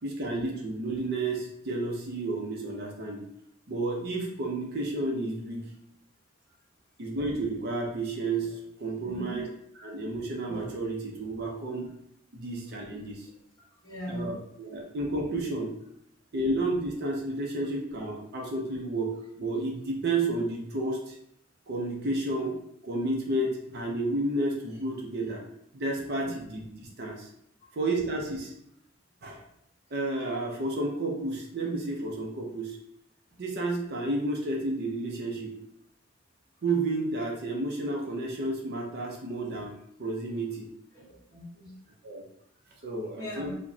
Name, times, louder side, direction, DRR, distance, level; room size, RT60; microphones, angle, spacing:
voice 1, 0.0-3.2 3.7-5.7 7.0-9.5 9.8-11.9 12.3-13.3 14.1-15.8 16.3-21.1 21.7-25.4 25.7-27.3 27.7-28.5 29.2-29.4 29.9-32.8 33.4-35.6 36.6-40.7 42.0-42.2 42.8-43.5, right 2 dB, 55° right, 0 dB, 0.6 m, -31 dB
voice 2, 9.0-9.5 12.4-12.8 13.6-14.3 26.2-26.5 27.6-27.7 40.9-41.8 43.2-43.6, equal, 20° left, -6 dB, 1.4 m, -40 dB
4.8 x 2.1 x 2.7 m, 0.72 s
head